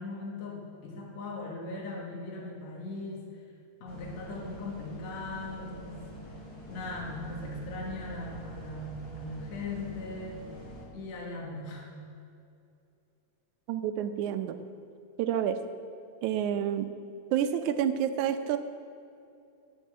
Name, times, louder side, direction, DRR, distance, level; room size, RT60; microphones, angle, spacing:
voice 1, 0.0-3.5 3.8-6.0 6.7-10.4 10.9-11.9, left 2 dB, 65° left, -2 dB, 2.8 m, -39 dB
sound 1, 3.9-10.8, right 2 dB, 40° left, 3.3 m, -45 dB
voice 2, 13.7-14.6 15.2-15.6 16.2-16.9 17.3-18.6, right 9 dB, 80° right, 9 dB, 2.1 m, -29 dB
16.0 x 5.8 x 7.5 m, 2.5 s
omnidirectional pair, 3.4 m